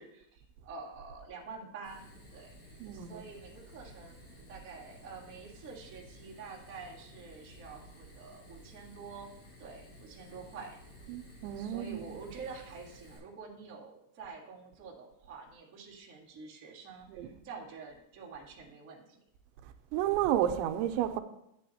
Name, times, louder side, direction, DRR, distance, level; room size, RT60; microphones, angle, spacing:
voice 1, 0.0-9.3 9.6-10.8 11.5-19.2, right 4 dB, 60° right, 0.8 m, -48 dB
Fire, 1.8-13.2, equal, 80° left, 6.1 m, -54 dB
voice 2, 2.8-3.2 11.1-12.0 17.2-17.3 19.9-21.2, right 11 dB, 85° right, 2.9 m, -31 dB
11.5 x 9.2 x 2.8 m
omnidirectional pair, 5.2 m